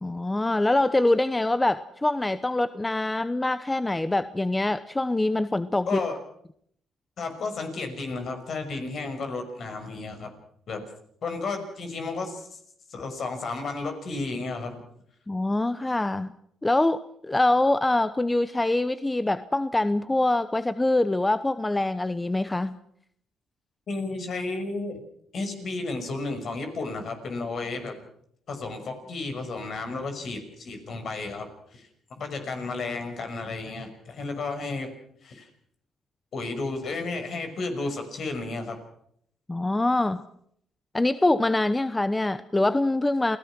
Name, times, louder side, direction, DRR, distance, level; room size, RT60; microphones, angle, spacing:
voice 1, 0.0-6.0 15.3-16.3 16.6-22.8 39.5-40.2 40.9-43.4, left 2 dB, 15° left, 13 dB, 0.8 m, -24 dB
voice 2, 5.9-6.2 7.2-10.3 10.7-10.9 11.2-12.6 12.9-14.8 23.9-25.0 25.3-28.0 28.5-31.9 32.2-34.9 35.2-35.5 36.3-38.8, left 3 dB, 55° left, 7 dB, 5.9 m, -32 dB
28.5 x 17.5 x 6.1 m, 0.68 s
cardioid pair, 90°, 0 cm